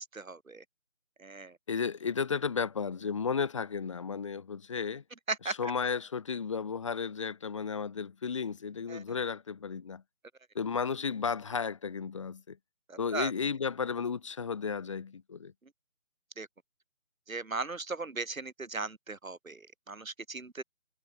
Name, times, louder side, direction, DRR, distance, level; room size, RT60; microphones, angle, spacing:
voice 1, 0.1-0.6 1.2-1.6 5.3-5.7 8.9-9.0 12.9-13.3 16.4-16.5 17.3-20.6, right 3 dB, 75° right, 2.8 m, -37 dB
voice 2, 1.7-5.0 5.4-10.0 10.5-12.6 13.0-15.5, left 6 dB, 25° left, 2.1 m, -33 dB
figure-of-eight pair, 165°, 41 cm